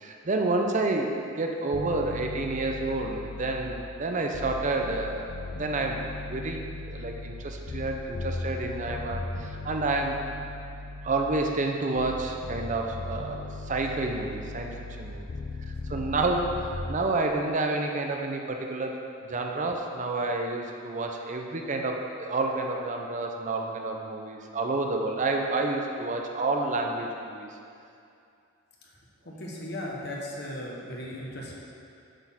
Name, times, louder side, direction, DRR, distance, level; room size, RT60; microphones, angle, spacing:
voice 1, 0.0-6.0 6.3-10.2 11.0-14.7 15.0-15.3 15.9-27.5, right 2 dB, 40° right, 2 dB, 0.6 m, -29 dB
sound 1, 1.7-3.9 4.3-11.5 12.0-17.0, left 2 dB, 75° left, 0.5 m, -38 dB
voice 2, 29.2-31.5, left 1 dB, 55° left, -3 dB, 1.2 m, -37 dB
8.0 x 4.3 x 5.7 m, 2.5 s
head